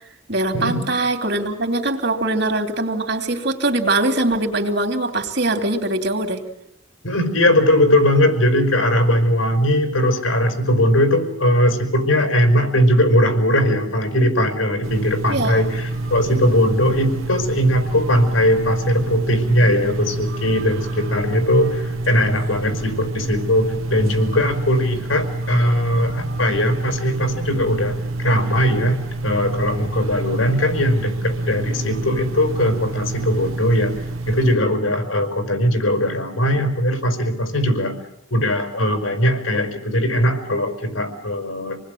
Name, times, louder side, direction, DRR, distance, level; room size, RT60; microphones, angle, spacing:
voice 1, 0.3-6.4 15.3-15.6, right 2 dB, 55° right, 4 dB, 3.1 m, -22 dB
voice 2, 7.0-38.0 38.3-41.8, equal, 85° left, 6 dB, 5.1 m, -19 dB
sound 1, 14.8-34.6, right 2 dB, 90° right, 2.1 m, -27 dB
27.0 x 20.0 x 9.3 m, 0.79 s
head